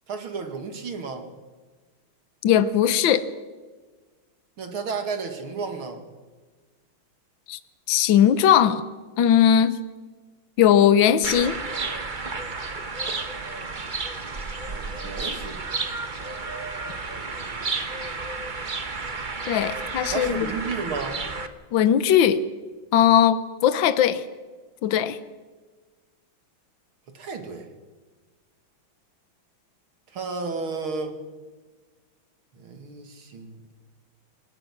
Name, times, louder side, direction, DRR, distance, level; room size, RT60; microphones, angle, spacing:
voice 1, 0.1-1.3 4.6-6.0 14.7-15.6 20.1-21.2 27.1-27.7 30.1-31.2 32.6-33.6, right 4 dB, 85° right, 5 dB, 3.1 m, -32 dB
voice 2, 2.4-3.2 7.5-7.6 7.9-8.8 9.2-9.8 10.6-11.6 19.5-20.5 21.7-22.4 22.9-24.2 24.8-25.2, left 9 dB, 70° left, 13 dB, 1.7 m, -19 dB
sound 1, 11.2-21.5, right 3 dB, 30° right, 1.1 m, -32 dB
26.5 x 18.5 x 6.1 m, 1.4 s
omnidirectional pair, 2.2 m